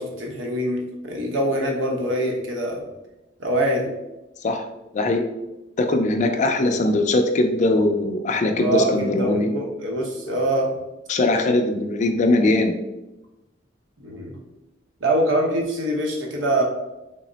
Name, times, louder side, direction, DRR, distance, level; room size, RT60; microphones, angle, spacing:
voice 1, 0.0-2.8 3.4-3.9 8.5-10.8 14.0-14.4 15.0-16.6, right 1 dB, 80° right, 0 dB, 0.7 m, -24 dB
voice 2, 4.9-5.3 5.8-9.5 11.1-12.8, left 2 dB, 40° left, 5 dB, 0.4 m, -20 dB
3.5 x 2.0 x 3.8 m, 0.98 s
head